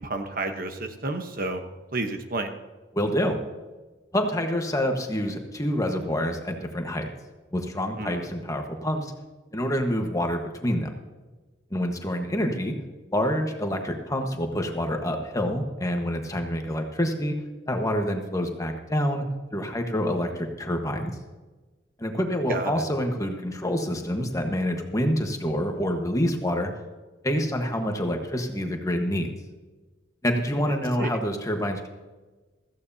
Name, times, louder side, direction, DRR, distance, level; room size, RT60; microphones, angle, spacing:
voice 1, 0.0-1.6 1.9-2.6 8.0-8.3 22.5-22.8 31.0-31.1, right 2 dB, 50° right, 6 dB, 1.1 m, -30 dB
voice 2, 2.9-3.4 4.1-7.1 7.5-9.1 9.5-10.9 11.7-12.7 13.1-17.3 17.7-19.3 19.5-21.1 22.0-26.7 27.2-29.3 30.2-31.9, equal, 20° left, 3 dB, 1.4 m, -27 dB
16.0 x 15.0 x 2.8 m, 1.3 s
head